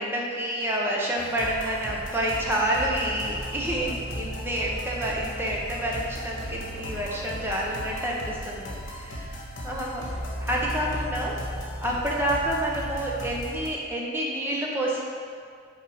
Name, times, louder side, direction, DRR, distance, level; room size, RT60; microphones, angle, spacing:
voice 1, 0.0-10.1 10.4-11.4 11.8-15.0, right 1 dB, 10° right, -3 dB, 0.9 m, -28 dB
sound 1, 1.2-13.7, equal, 75° left, 1.6 m, -36 dB
7.0 x 4.6 x 4.9 m, 2.2 s
head